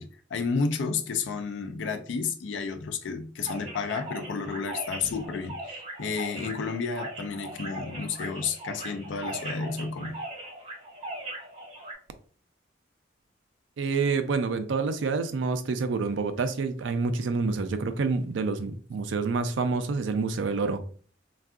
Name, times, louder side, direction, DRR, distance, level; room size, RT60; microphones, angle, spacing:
voice 1, 0.0-10.2, left 5 dB, 85° left, 0.4 m, -31 dB
sound 1, 3.4-11.9, right 1 dB, 35° right, 1.0 m, -39 dB
voice 2, 13.8-20.8, right 4 dB, 90° right, 0.4 m, -27 dB
3.5 x 2.3 x 2.3 m
head